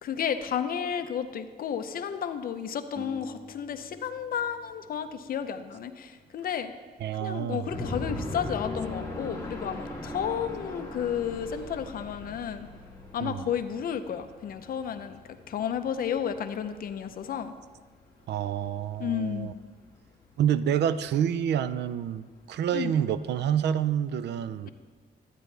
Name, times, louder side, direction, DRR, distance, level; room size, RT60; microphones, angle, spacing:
voice 1, 0.0-6.7 7.2-12.7 13.1-15.2 15.5-17.5 19.0-19.5 22.7-22.9, left 8 dB, 55° left, 9 dB, 0.5 m, -32 dB
sound 1, 3.0-6.2, equal, 25° right, 1.1 m, -48 dB
voice 2, 7.0-7.7 13.2-13.5 18.3-19.5 20.4-24.7, right 9 dB, 80° right, 14 dB, 0.4 m, -28 dB
sound 2, 7.7-17.7 18.1-18.2 18.6-18.9 19.2-19.3 19.6-19.7 20.3-20.5 21.0-21.1, left 2 dB, 15° left, 1.5 m, -39 dB
12.0 x 9.1 x 3.3 m, 1.5 s
wide cardioid pair, 175°, 17 cm